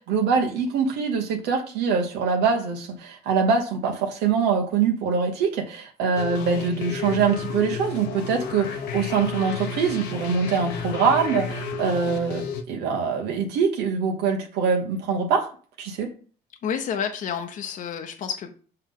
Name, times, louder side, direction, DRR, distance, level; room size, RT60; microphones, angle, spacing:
voice 1, 0.0-15.5 15.8-16.1, right 5 dB, 90° right, 2 dB, 1.1 m, -24 dB
sound 1, 6.1-12.6, left 5 dB, 90° left, 1.0 m, -32 dB
voice 2, 16.6-18.7, left 7 dB, 50° left, 5 dB, 0.8 m, -30 dB
5.7 x 5.5 x 3.7 m, 0.41 s
cardioid pair, 110°, 17 cm